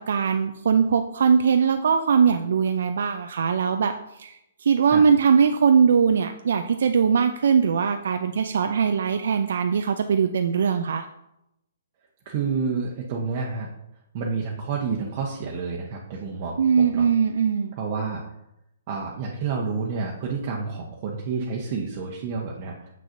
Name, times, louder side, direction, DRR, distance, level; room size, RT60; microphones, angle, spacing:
voice 1, 0.0-11.0 16.6-17.7, right 6 dB, 70° right, 7 dB, 0.4 m, -21 dB
voice 2, 12.2-13.7 14.1-17.1 17.8-18.2 18.9-22.9, right 5 dB, 40° right, -2 dB, 1.0 m, -29 dB
6.8 x 6.3 x 2.6 m, 0.82 s
hypercardioid pair, 140°, 0 cm